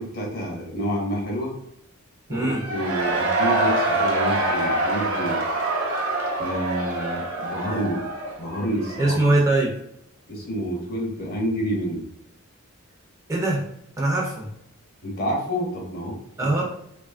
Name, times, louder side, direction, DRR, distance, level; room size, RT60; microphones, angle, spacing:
voice 1, 0.0-1.6 2.3-5.4 6.3-8.1 8.4-9.1 10.3-12.1 15.0-16.6, equal, 45° left, -1 dB, 0.7 m, -29 dB
voice 2, 2.3-2.6 9.0-9.7 13.3-13.6 14.0-14.5 16.4-16.6, right 2 dB, 15° right, -3 dB, 0.4 m, -21 dB
Cheering / Crowd, 2.5-9.2, right 2 dB, 75° right, 0.6 m, -25 dB
2.9 x 2.3 x 2.4 m, 0.76 s
head